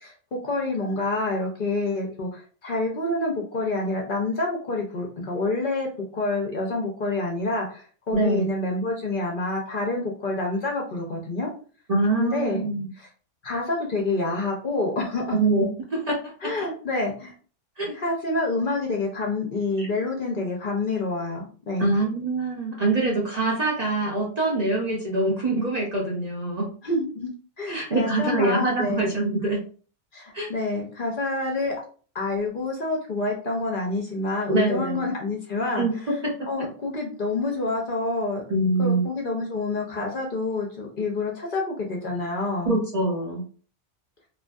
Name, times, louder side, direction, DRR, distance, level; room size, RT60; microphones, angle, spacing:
voice 1, 0.0-11.5 12.2-12.6 13.0-13.1 13.4-15.3 16.4-17.3 17.9-21.9 26.8-27.3 27.6-29.1 30.1-31.8 32.1-36.1 36.5-38.4 38.8-42.8, left 2 dB, 55° left, 0 dB, 0.7 m, -27 dB
voice 2, 8.1-8.5 11.9-12.9 15.3-16.5 17.8-17.9 19.8-19.9 21.8-26.7 27.7-29.6 30.3-30.5 34.5-35.1 35.8-36.3 38.5-39.0 42.7-43.4, right 2 dB, 45° right, -3 dB, 0.6 m, -24 dB
2.5 x 2.4 x 2.2 m, 0.40 s
omnidirectional pair, 1.2 m